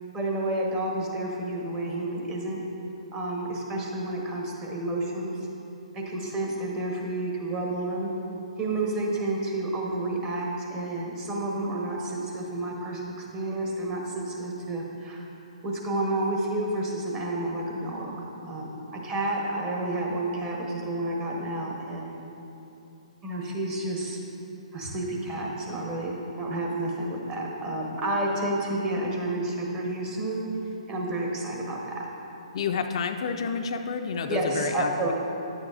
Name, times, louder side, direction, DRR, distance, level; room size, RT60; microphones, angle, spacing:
voice 1, 0.1-2.6 3.1-5.3 5.9-8.1 8.6-15.2 15.6-22.2 23.2-24.2 24.7-30.5 30.9-32.0 34.3-35.1, right 2 dB, 20° right, -2 dB, 1.0 m, -30 dB
voice 2, 32.5-35.1, left 5 dB, 55° left, 6 dB, 0.3 m, -29 dB
9.6 x 6.5 x 2.5 m, 2.9 s
figure-of-eight pair, 130°, 4 cm